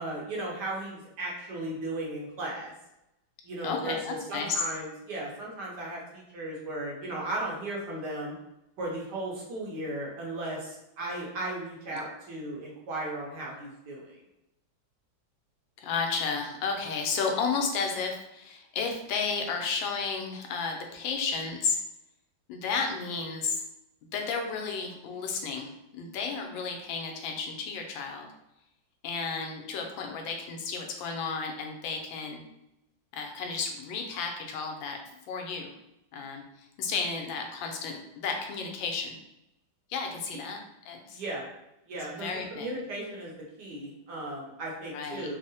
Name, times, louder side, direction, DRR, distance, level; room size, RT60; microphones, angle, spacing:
voice 1, 0.0-2.7 3.4-4.0 4.3-8.3 8.8-14.2 41.1-41.4 41.9-45.4, right 1 dB, 70° right, -3 dB, 1.2 m, -36 dB
voice 2, 3.6-4.7 11.9-12.0 15.8-21.8 22.5-23.6 24.1-28.3 29.0-32.4 33.1-35.7 36.1-39.2 39.9-40.6 40.9-41.2 42.1-42.7 44.9-45.3, left 5 dB, 85° left, 2 dB, 1.3 m, -32 dB
3.5 x 2.0 x 2.7 m, 0.87 s
omnidirectional pair, 2.0 m